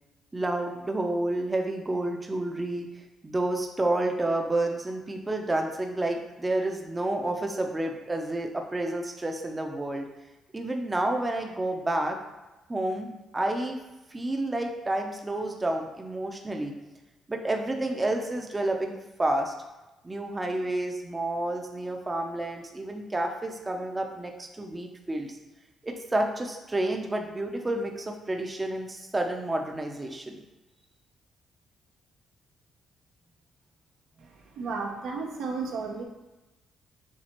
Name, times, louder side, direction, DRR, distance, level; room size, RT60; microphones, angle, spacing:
voice 1, 0.3-2.9 3.2-10.0 10.5-12.2 12.7-13.8 14.1-16.7 17.3-19.5 20.0-25.4 25.8-30.4, right 1 dB, 20° right, 3 dB, 0.6 m, -30 dB
voice 2, 34.6-36.0, right 4 dB, 80° right, 1 dB, 0.7 m, -33 dB
7.2 x 2.4 x 2.9 m, 1.1 s
cardioid pair, 90°, 0 cm